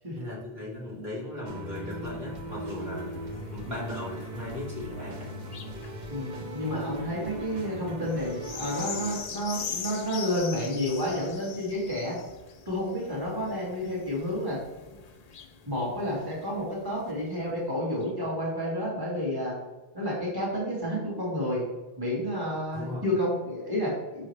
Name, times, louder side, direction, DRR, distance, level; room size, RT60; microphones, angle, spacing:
voice 1, 0.1-3.1 3.5-5.4 7.6-8.0 22.7-23.0, left 1 dB, 75° right, -7 dB, 2.5 m, -38 dB
sound 1, 1.5-9.2, right 1 dB, 50° right, 0.8 m, -39 dB
sound 2, 1.6-17.4 18.0-18.1, left 6 dB, 50° left, 0.5 m, -43 dB
voice 2, 6.1-12.2 12.7-14.6 15.7-19.6 19.9-21.6 22.0-24.3, left 1 dB, 20° right, -5 dB, 1.8 m, -30 dB
6.2 x 5.6 x 3.2 m, 1.2 s
omnidirectional pair, 1.0 m